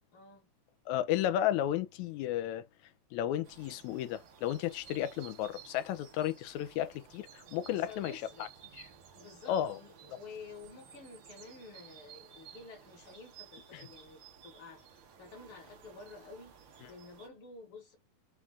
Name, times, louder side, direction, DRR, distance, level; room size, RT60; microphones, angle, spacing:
voice 1, 0.1-0.5 7.4-8.5 9.1-16.5 16.9-18.0, left 3 dB, 60° left, 1.6 m, -51 dB
voice 2, 0.9-2.7 3.1-8.5 8.7-8.9 9.5-9.8 13.7-13.9, left 11 dB, 80° left, 1.9 m, -33 dB
sound 1, 3.4-17.3, right 8 dB, 75° right, 1.1 m, -55 dB
4.8 x 2.4 x 3.4 m
omnidirectional pair, 3.4 m